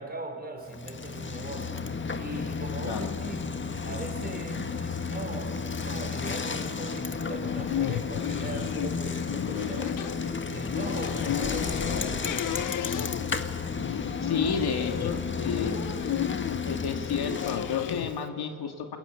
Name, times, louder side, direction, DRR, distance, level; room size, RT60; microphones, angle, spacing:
voice 1, 0.0-1.8 2.1-3.5 3.8-12.3, right 2 dB, 20° right, 4 dB, 5.0 m, -40 dB
Bicycle, 0.7-18.2, left 5 dB, 30° left, 1.6 m, -33 dB
sound 1, 7.2-18.1, left 13 dB, 50° left, 0.6 m, -34 dB
voice 2, 14.2-15.8 16.6-19.0, left 6 dB, 65° left, 5 dB, 2.6 m, -31 dB
29.0 x 21.5 x 8.8 m, 2.3 s
cardioid pair, 95°, 41 cm